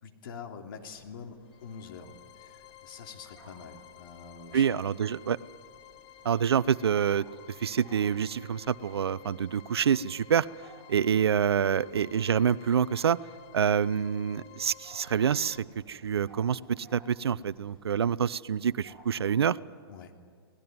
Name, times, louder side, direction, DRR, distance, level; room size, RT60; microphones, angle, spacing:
voice 1, 0.0-4.6 19.9-20.1, left 5 dB, 60° left, 3 dB, 3.1 m, -45 dB
sound 1, 0.7-19.6, right 1 dB, 10° left, 6.5 m, -59 dB
sound 2, 1.4-15.6, left 13 dB, 35° left, 1.0 m, -53 dB
voice 2, 4.5-5.4 6.2-7.2 7.6-10.5 10.9-13.2 13.5-15.6 15.9-19.6, right 8 dB, 80° right, 19 dB, 0.6 m, -26 dB
25.5 x 18.0 x 9.4 m, 2.1 s
hypercardioid pair, 125°, 13 cm